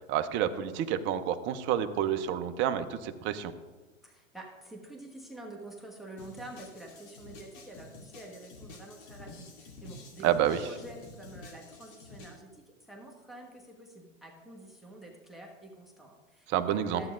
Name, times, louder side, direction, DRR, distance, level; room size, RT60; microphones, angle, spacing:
voice 1, 0.1-3.5 10.2-10.7 16.5-17.0, right 10 dB, 30° right, 10 dB, 0.6 m, -29 dB
voice 2, 4.0-17.1, right 1 dB, ahead, 1 dB, 1.2 m, -47 dB
sound 1, 6.2-12.4, left 2 dB, 60° left, 2.5 m, -49 dB
13.5 x 8.4 x 2.5 m, 1.3 s
hypercardioid pair, 120°, 39 cm